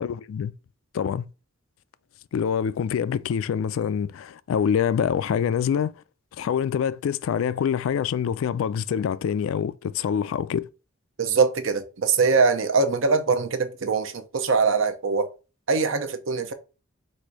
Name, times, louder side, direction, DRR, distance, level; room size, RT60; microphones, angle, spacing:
voice 1, 0.0-0.5 0.9-1.3 2.3-5.9 6.4-10.7, left 7 dB, 70° left, 0.3 m, -25 dB
voice 2, 11.2-15.3 15.7-16.5, right 4 dB, 65° right, 0.7 m, -22 dB
4.2 x 2.6 x 4.6 m
head